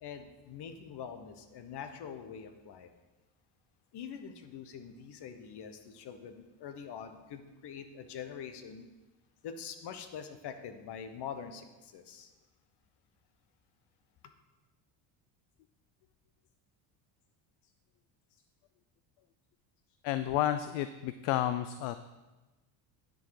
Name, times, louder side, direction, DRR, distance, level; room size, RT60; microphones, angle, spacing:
voice 1, 0.0-2.9 3.9-8.9 9.4-12.3, left 7 dB, 55° left, 9 dB, 1.1 m, -44 dB
voice 2, 20.0-22.1, left 12 dB, 70° left, 11 dB, 0.6 m, -31 dB
10.5 x 6.6 x 4.8 m, 1.1 s
supercardioid pair, 100°, 50 cm